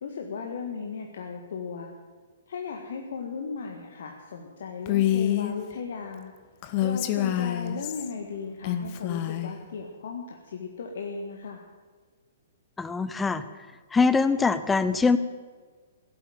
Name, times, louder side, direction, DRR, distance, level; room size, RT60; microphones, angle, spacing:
voice 1, 0.0-1.9 2.5-6.3 6.8-11.6, left 5 dB, 60° left, 2 dB, 1.6 m, -36 dB
Female speech woman speaking, 4.9-5.6 6.6-8.1 8.6-9.5, left 12 dB, 40° left, 1.2 m, -26 dB
voice 2, 12.8-13.4 13.9-15.2, left 4 dB, 10° left, 13 dB, 0.8 m, -23 dB
16.5 x 8.4 x 9.3 m, 1.5 s
figure-of-eight pair, 115°, 0 cm